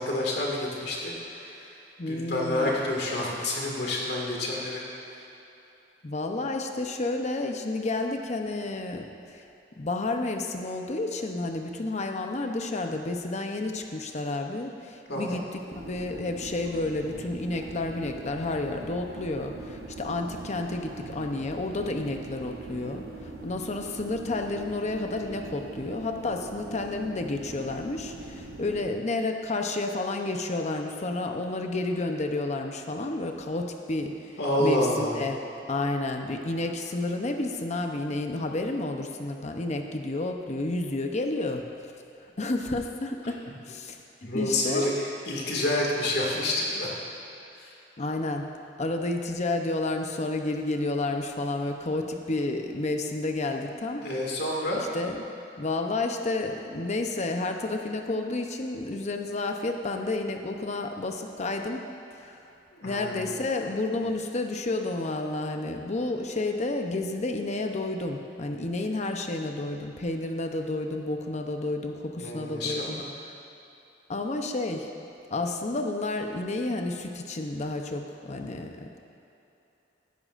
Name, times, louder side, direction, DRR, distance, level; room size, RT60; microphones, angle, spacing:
voice 1, 0.0-1.7 2.1-4.8 15.1-15.4 34.4-35.1 44.2-46.9 47.6-47.7 54.0-54.8 62.7-63.3 72.2-73.1, left 1 dB, 65° left, -3 dB, 2.1 m, -28 dB
voice 2, 2.0-2.7 6.0-9.0 9.3-9.4 9.8-15.4 15.7-23.0 23.4-34.3 34.6-35.4 35.7-41.6 42.4-43.4 43.7-44.0 44.3-44.9 48.0-48.5 48.8-54.0 54.9-55.3 55.6-61.8 62.1-62.4 62.8-73.0 74.1-74.9 75.3-79.0, left 2 dB, 40° left, 4 dB, 0.7 m, -30 dB
sound 1, 15.7-28.9, right 3 dB, 60° right, 0.9 m, -42 dB
16.0 x 10.5 x 2.5 m, 2.9 s
head